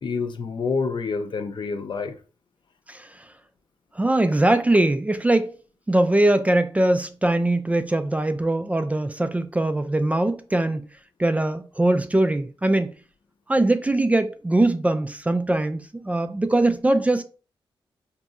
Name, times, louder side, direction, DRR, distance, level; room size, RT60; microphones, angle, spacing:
voice 1, 0.0-2.2, left 4 dB, 55° left, 0.5 m, -27 dB
voice 2, 4.0-5.5 5.9-10.8 11.2-12.9 13.5-17.2, right 1 dB, 15° right, 0.3 m, -21 dB
4.0 x 2.7 x 2.4 m
cardioid pair, 70°, 9 cm